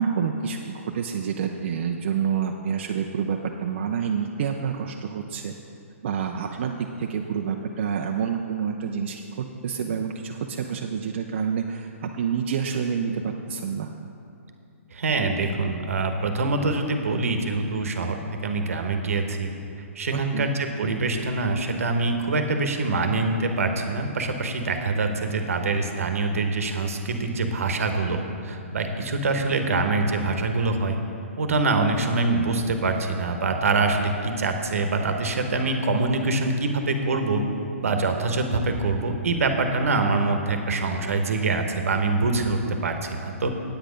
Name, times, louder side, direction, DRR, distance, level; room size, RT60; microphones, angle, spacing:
voice 1, 0.0-5.5 6.0-13.9 20.1-20.6, right 7 dB, 50° right, 2 dB, 0.5 m, -28 dB
voice 2, 14.9-19.5 19.9-31.0 31.4-37.4 37.8-43.5, right 3 dB, 75° right, 5 dB, 1.1 m, -25 dB
8.8 x 8.2 x 5.1 m, 2.6 s
hypercardioid pair, 155°, 8 cm